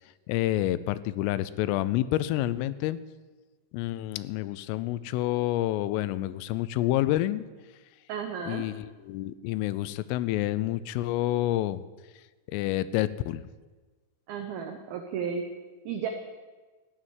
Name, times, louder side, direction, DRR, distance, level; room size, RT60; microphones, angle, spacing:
voice 1, 0.3-3.0 3.7-7.5 8.5-11.8 12.5-13.4, left 15 dB, 85° left, 16 dB, 3.2 m, -28 dB
voice 2, 8.1-8.7 14.3-15.5 15.9-16.1, right 6 dB, 90° right, 5 dB, 2.1 m, -33 dB
15.0 x 9.8 x 9.0 m, 1.3 s
omnidirectional pair, 5.8 m